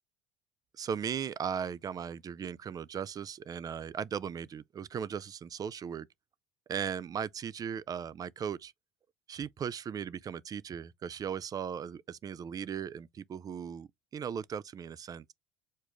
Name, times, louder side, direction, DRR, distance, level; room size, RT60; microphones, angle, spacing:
voice 1, 0.7-6.1 6.7-8.7 9.3-15.3, right 7 dB, 30° right, 0.4 m, -37 dB
6.3 x 2.4 x 3.1 m
supercardioid pair, 90°, 12 cm